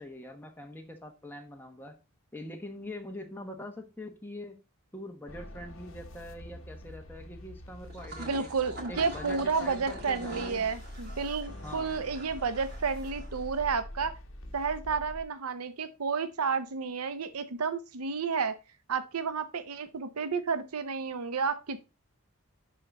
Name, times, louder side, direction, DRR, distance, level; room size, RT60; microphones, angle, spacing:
voice 1, 0.0-2.0 2.3-4.6 4.9-8.5 8.9-10.7 11.6-11.9, left 1 dB, 10° left, 2 dB, 1.2 m, -43 dB
sound 1, 5.3-15.2, left 1 dB, 60° left, 1.2 m, -45 dB
sound 2, 7.8-13.7, right 1 dB, 45° right, 2.4 m, -45 dB
voice 2, 8.2-14.2 14.5-18.5 18.9-21.8, right 5 dB, 85° right, 11 dB, 0.7 m, -31 dB
11.0 x 3.9 x 4.0 m, 0.28 s
head